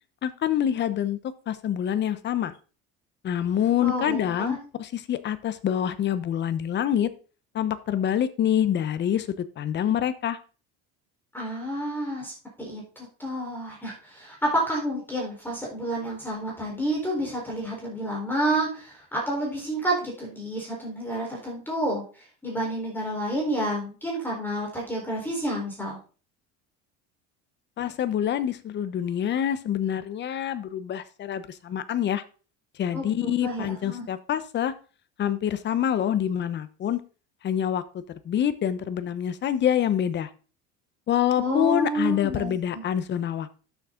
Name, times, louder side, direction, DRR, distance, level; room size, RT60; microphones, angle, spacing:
voice 1, 0.2-1.2 1.5-2.5 3.2-7.1 7.5-10.4 27.8-32.2 32.8-34.7 35.2-37.0 37.4-37.8 38.2-40.3 41.1-43.7, left 10 dB, 35° left, 12 dB, 1.0 m, -26 dB
voice 2, 3.8-4.6 11.3-12.3 12.6-26.0 32.9-34.0 41.4-42.8, right 1 dB, 5° left, -3 dB, 4.2 m, -29 dB
12.0 x 7.3 x 3.8 m, 0.36 s
cardioid pair, 140°, 30 cm